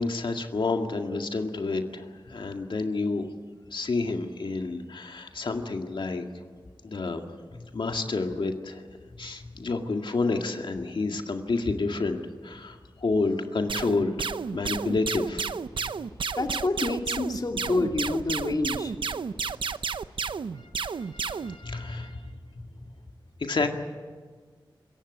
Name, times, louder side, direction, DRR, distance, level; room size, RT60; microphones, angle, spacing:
voice 1, 0.0-3.2 3.7-6.2 6.8-7.2 7.7-8.8 9.2-15.5 20.6-22.2 23.4-23.7, left 3 dB, 70° left, 4 dB, 2.0 m, -29 dB
voice 2, 9.2-9.5 16.4-18.9 21.6-22.1, left 2 dB, 50° left, 3 dB, 2.8 m, -29 dB
sound 1, 13.7-21.6, right 5 dB, 80° right, 0.7 m, -31 dB
26.0 x 15.5 x 9.9 m, 1.5 s
wide cardioid pair, 75°, 9 cm